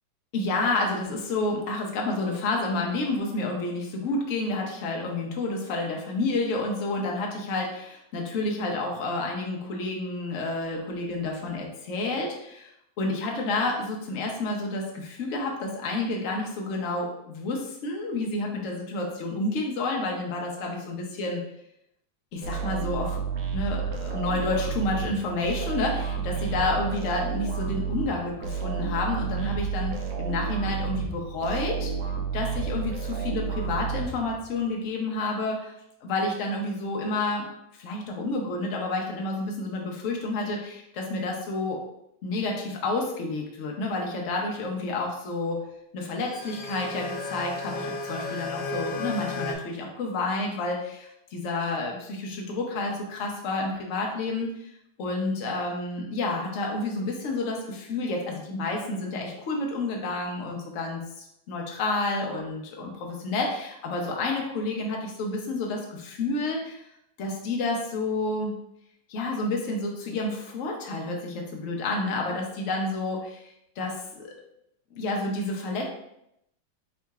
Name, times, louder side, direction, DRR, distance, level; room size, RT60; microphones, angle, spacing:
voice 1, 0.3-12.7 13.0-21.4 22.3-23.2 23.5-31.9 32.3-35.7 36.0-37.5 37.7-41.8 42.2-45.6 45.9-47.7 48.1-54.7 55.0-66.8 67.2-68.5 69.1-74.3 74.9-75.9, left 2 dB, 55° left, 0 dB, 0.9 m, -30 dB
sound 1, 22.4-34.6, right 6 dB, 70° right, 1.1 m, -31 dB
sound 2, 46.2-49.6, left 3 dB, 80° left, 1.5 m, -34 dB
4.2 x 3.7 x 2.3 m, 0.79 s
omnidirectional pair, 2.0 m